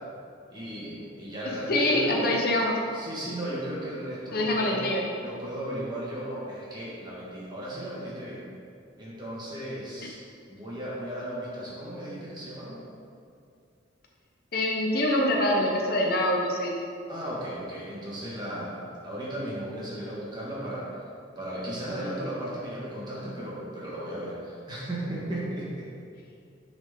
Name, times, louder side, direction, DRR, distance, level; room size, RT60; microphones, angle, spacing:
voice 1, 0.5-2.4 2.9-4.9 5.2-8.4 9.0-10.2 10.5-12.8 17.1-21.0 21.4-25.9, right 1 dB, 25° right, -7 dB, 1.5 m, -35 dB
voice 2, 1.7-2.7 4.3-5.0 14.5-16.7, left 1 dB, 50° left, -1 dB, 0.8 m, -24 dB
10.0 x 4.0 x 3.6 m, 2.4 s
head